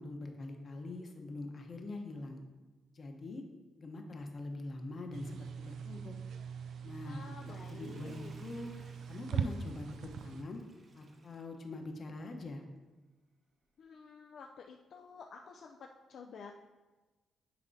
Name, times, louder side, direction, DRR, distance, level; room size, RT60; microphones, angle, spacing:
voice 1, 0.0-2.4 2.9-3.4 3.8-6.1 6.8-8.7 9.1-10.6 10.9-12.6, left 2 dB, 45° left, 4 dB, 0.9 m, -44 dB
sound 1, 5.1-10.4, right 6 dB, 75° right, 0.3 m, -41 dB
voice 2, 7.0-8.3 13.8-16.5, left 5 dB, 65° left, 1 dB, 0.4 m, -51 dB
Water / Toilet flush, 7.1-12.2 12.6-12.7, right 1 dB, 40° right, 1.1 m, -59 dB
10.0 x 4.2 x 2.7 m, 1.2 s
cardioid pair, 90°, 0 cm